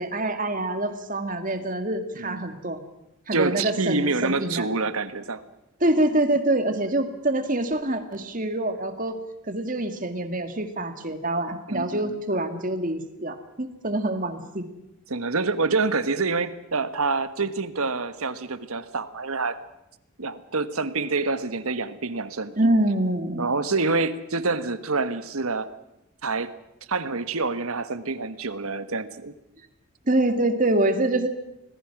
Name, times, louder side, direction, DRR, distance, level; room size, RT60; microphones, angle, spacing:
voice 1, 0.0-2.8 3.3-4.6 5.8-14.6 22.6-23.5 30.1-31.3, right 1 dB, 35° right, 8 dB, 2.1 m, -25 dB
voice 2, 3.3-5.4 11.7-12.1 15.1-19.6 20.2-22.6 23.4-25.7 26.2-26.5 26.9-29.3, right 3 dB, 75° right, 12 dB, 1.4 m, -27 dB
26.0 x 20.0 x 6.1 m, 0.87 s
head